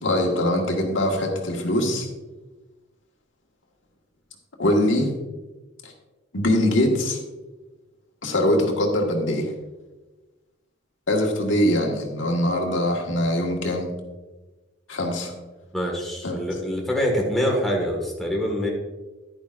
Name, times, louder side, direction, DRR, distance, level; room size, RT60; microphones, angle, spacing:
voice 1, 0.0-2.1 4.6-5.1 5.8-5.9 6.3-7.2 8.2-9.5 11.1-13.9 14.9-15.3 16.2-16.4, left 1 dB, 85° left, 1 dB, 1.7 m, -22 dB
voice 2, 15.7-18.7, equal, ahead, -2 dB, 1.7 m, -25 dB
10.5 x 10.0 x 2.5 m, 1.2 s
head